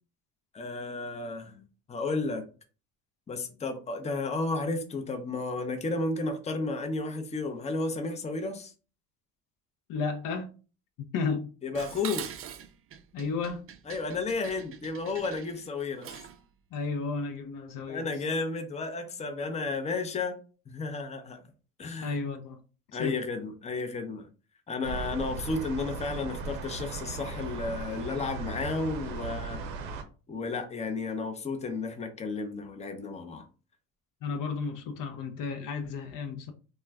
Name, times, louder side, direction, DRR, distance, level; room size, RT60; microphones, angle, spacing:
voice 1, 0.5-2.5 3.3-8.7 11.6-12.3 13.9-16.1 17.9-20.4 20.7-21.5 21.8-22.2 22.9-24.3 24.7-29.9 30.3-33.5, left 3 dB, 20° left, 0.5 m, -33 dB
voice 2, 9.9-10.5 11.1-11.5 13.1-13.7 16.7-18.1 22.0-22.6 23.0-23.2 34.2-36.5, left 4 dB, 60° left, 0.6 m, -33 dB
Dishes pots and pans, 11.7-16.4, right 9 dB, 40° right, 0.4 m, -43 dB
sound 1, 24.8-30.0, right 3 dB, 85° right, 0.6 m, -37 dB
2.3 x 2.2 x 3.3 m
supercardioid pair, 75°, 37 cm